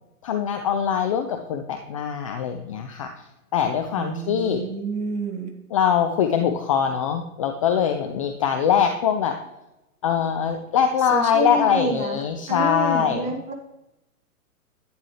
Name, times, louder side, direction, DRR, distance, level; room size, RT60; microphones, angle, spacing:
voice 1, 0.2-3.1 3.5-4.6 5.7-9.4 10.0-13.3, left 8 dB, 25° left, 5 dB, 0.5 m, -23 dB
voice 2, 4.0-5.5 11.1-12.2 12.5-13.5, right 3 dB, 15° right, 3 dB, 1.2 m, -28 dB
11.0 x 9.2 x 3.3 m, 0.94 s
figure-of-eight pair, 115°, 45 cm